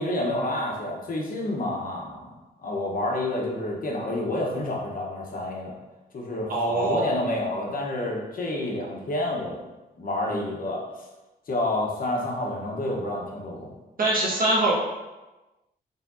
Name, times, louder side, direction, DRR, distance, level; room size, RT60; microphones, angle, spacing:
voice 1, 0.0-5.7 6.1-9.6 10.0-10.8 11.5-13.7, left 1 dB, 55° left, -2 dB, 1.0 m, -29 dB
voice 2, 6.5-7.1 14.0-14.7, right 2 dB, 55° right, -5 dB, 1.4 m, -23 dB
4.6 x 3.3 x 2.6 m, 1.1 s
cardioid pair, 90°, 18 cm